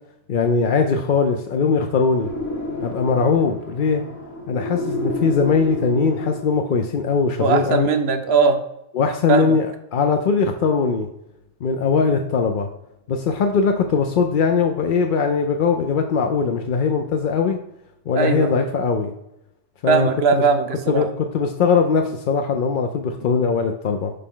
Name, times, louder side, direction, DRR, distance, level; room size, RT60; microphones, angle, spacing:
voice 1, 0.3-2.3 2.8-4.0 4.5-7.9 8.9-11.1 11.6-12.7 13.1-17.6 18.1-19.1 19.8-20.4 20.9-24.1, left 5 dB, 55° left, 4 dB, 0.6 m, -20 dB
sound 1, 2.2-6.8, left 1 dB, 85° left, 1.9 m, -30 dB
voice 2, 7.4-8.6 9.3-9.6 18.1-18.5 19.9-21.1 23.2-23.3, right 5 dB, 60° right, 8 dB, 1.0 m, -19 dB
6.8 x 4.9 x 3.7 m, 0.88 s
omnidirectional pair, 1.2 m